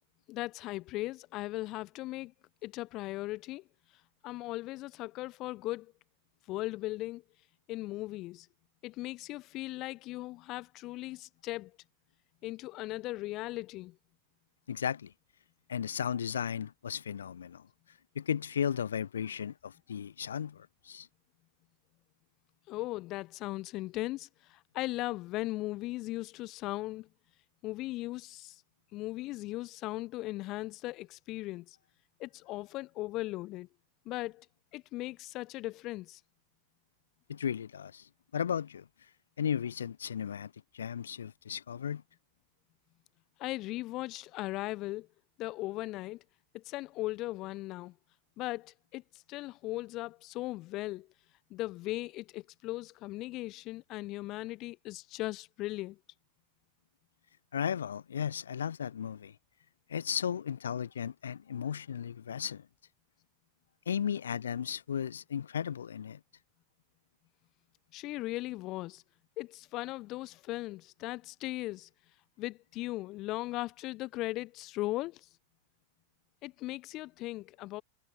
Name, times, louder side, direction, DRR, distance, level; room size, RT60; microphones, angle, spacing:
voice 1, 0.3-2.3 2.6-3.6 4.2-5.9 6.5-7.2 7.7-8.5 8.8-11.8 12.4-14.0 22.7-27.1 27.6-28.6 28.9-31.8 32.2-33.7 34.1-34.5 34.7-36.2 43.4-45.1 45.4-46.2 46.5-47.9 48.4-51.1 51.5-56.0 67.9-69.0 69.4-71.9 72.4-75.3 76.4-77.8, left 18 dB, 40° left, 0.8 m, -38 dB
voice 2, 14.7-15.1 15.7-17.7 18.1-21.1 37.3-38.9 39.4-42.0 57.5-59.4 59.9-62.7 63.9-66.2, left 8 dB, 65° left, 0.6 m, -35 dB
figure-of-eight pair, 90°, 0 cm